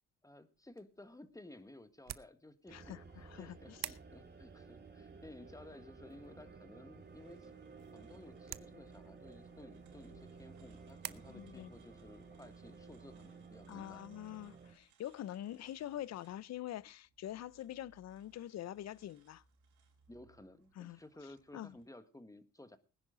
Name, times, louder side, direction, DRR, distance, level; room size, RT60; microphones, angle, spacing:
voice 1, 0.2-3.0 3.4-7.5 7.9-14.0 20.1-22.8, left 1 dB, 10° left, 1.5 m, -55 dB
sound 1, 0.6-11.1, right 12 dB, 60° right, 0.7 m, -52 dB
voice 2, 2.7-3.9 11.3-11.7 13.7-19.4 20.8-21.0 21.5-21.8, left 12 dB, 60° left, 0.6 m, -45 dB
sound 2, 2.7-14.7, right 4 dB, 35° right, 2.7 m, -55 dB
sound 3, 6.9-21.8, right 4 dB, 85° right, 4.4 m, -69 dB
19.5 x 10.5 x 3.8 m
cardioid pair, 90°, 30 cm